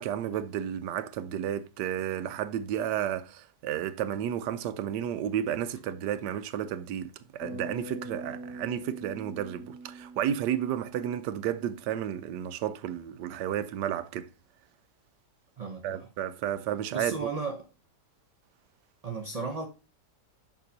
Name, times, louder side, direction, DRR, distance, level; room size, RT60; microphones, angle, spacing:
voice 1, 0.0-14.3 15.8-17.3, right 10 dB, 85° right, 1.2 m, -32 dB
Bass guitar, 7.4-11.8, right 2 dB, 70° left, 3.0 m, -43 dB
voice 2, 15.6-16.1 16.9-17.7 19.0-19.7, right 4 dB, 50° right, 0.4 m, -34 dB
6.7 x 6.2 x 2.7 m
omnidirectional pair, 1.8 m